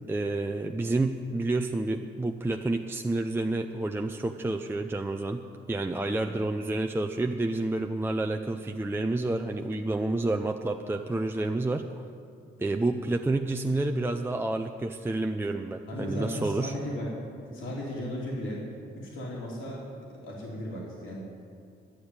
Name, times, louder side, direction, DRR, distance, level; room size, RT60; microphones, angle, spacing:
voice 1, 0.1-5.4 5.7-11.8 12.6-16.7 17.5-17.6, right 2 dB, 10° right, 4 dB, 0.5 m, -29 dB
voice 2, 15.9-17.1 17.5-18.6 19.0-19.8 20.2-21.2, equal, 80° left, -4 dB, 3.0 m, -35 dB
11.5 x 7.0 x 9.5 m, 2.3 s
cardioid pair, 90°, 20 cm